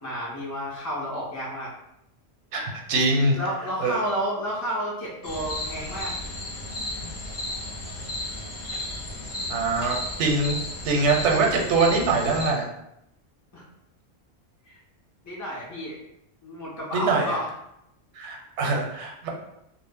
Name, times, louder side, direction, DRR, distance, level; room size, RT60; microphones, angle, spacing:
voice 1, 0.0-1.7 3.3-6.1 13.5-13.6 14.7-14.8 15.2-16.0 16.4-17.5, equal, 30° left, -6 dB, 0.3 m, -31 dB
voice 2, 2.5-3.4 3.8-4.0 9.5-10.6 10.8-12.7 16.9-17.3 18.2-19.3, right 3 dB, 85° right, 0 dB, 0.9 m, -23 dB
sound 1, 5.2-12.5, left 1 dB, 50° left, 0.7 m, -34 dB
2.0 x 2.0 x 3.3 m, 0.82 s
omnidirectional pair, 1.1 m